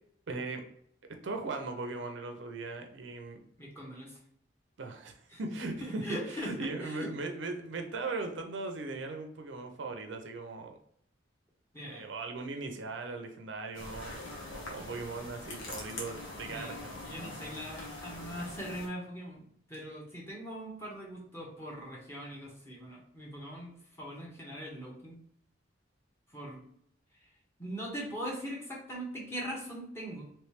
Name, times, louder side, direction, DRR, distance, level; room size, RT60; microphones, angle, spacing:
voice 1, 0.3-0.6 1.0-3.4 4.8-10.8 11.8-17.0, right 3 dB, 70° right, 5 dB, 0.5 m, -39 dB
voice 2, 3.6-4.2 5.3-5.4 5.8-6.5 6.8-7.1 11.7-12.0 16.4-16.8 17.0-25.2 26.3-26.6 27.6-30.5, equal, 15° left, -4 dB, 1.1 m, -41 dB
sound 1, 13.7-18.9, left 2 dB, 85° left, 1.0 m, -43 dB
3.1 x 3.1 x 3.2 m, 0.68 s
head